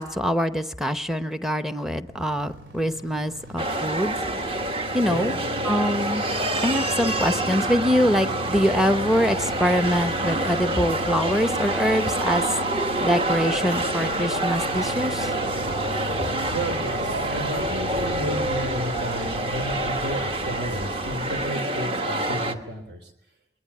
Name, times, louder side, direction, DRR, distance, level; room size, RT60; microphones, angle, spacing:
voice 1, 0.0-4.2 4.9-5.4 5.6-6.2 6.6-12.4 13.0-15.3, equal, ahead, 11 dB, 0.8 m, -24 dB
sound 1, 2.1-21.5, left 1 dB, 85° right, 2.3 m, -38 dB
sound 2, 3.6-22.5, right 1 dB, 30° right, 1.3 m, -27 dB
voice 2, 16.5-23.1, equal, 65° right, 8 dB, 3.4 m, -32 dB
20.5 x 20.0 x 8.6 m, 0.88 s
head